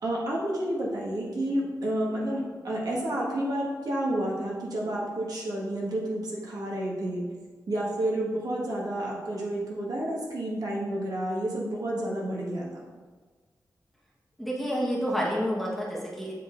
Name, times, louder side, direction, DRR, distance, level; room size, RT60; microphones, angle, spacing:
voice 1, 0.0-7.2 7.7-12.8, right 1 dB, 70° right, -4 dB, 1.5 m, -30 dB
voice 2, 14.4-16.3, equal, ahead, -5 dB, 1.3 m, -29 dB
7.3 x 4.0 x 3.8 m, 1.4 s
wide cardioid pair, 140°, 7 cm